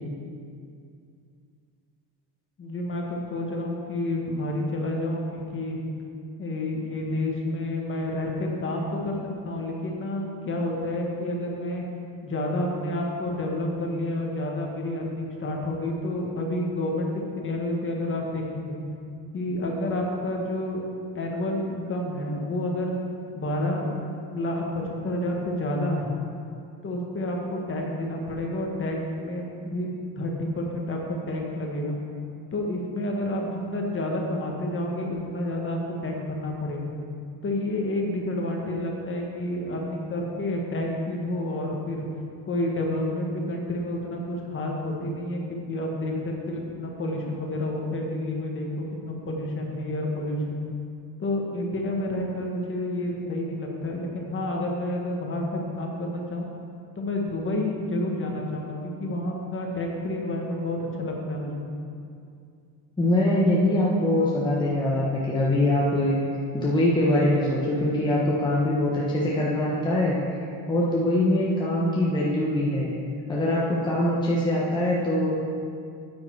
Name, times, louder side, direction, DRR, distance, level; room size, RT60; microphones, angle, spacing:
voice 1, 2.6-5.8 6.4-9.2 9.4-11.8 12.2-18.8 19.3-20.8 21.1-22.9 23.3-23.9 24.3-26.1 26.8-29.9 30.2-31.0 31.3-32.0 32.5-36.9 37.4-42.0 42.4-50.7 51.2-56.5 56.9-61.6, left 1 dB, 30° left, 0 dB, 1.6 m, -29 dB
voice 2, 63.0-66.2 66.5-70.2 70.7-72.9 73.3-75.3, left 1 dB, 10° left, -6 dB, 1.1 m, -23 dB
8.8 x 8.8 x 4.7 m, 2.4 s
cardioid pair, 135°, 43 cm